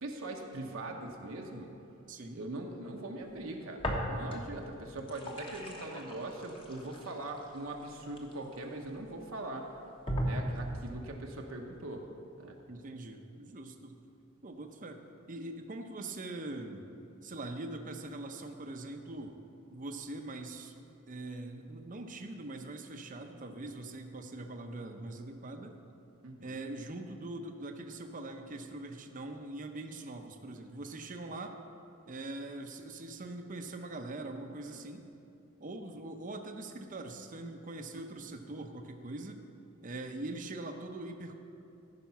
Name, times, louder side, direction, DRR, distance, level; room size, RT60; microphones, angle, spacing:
voice 1, 0.0-1.7 2.3-9.7 10.2-12.1 12.4-12.6 26.2-26.6 35.0-35.1 38.1-38.2, right 2 dB, 70° right, 1 dB, 1.0 m, -41 dB
voice 2, 2.1-2.4 12.7-14.0 14.4-16.9 17.2-19.4 19.7-20.7 21.1-25.8 26.4-31.6 32.1-35.0 35.6-39.4 39.8-41.3, right 2 dB, 40° right, 5 dB, 0.7 m, -42 dB
sound 1, 3.8-4.6 4.9-8.9 9.4-9.5 10.1-11.0, equal, 25° left, 1.1 m, -37 dB
14.5 x 5.2 x 5.7 m, 2.6 s
head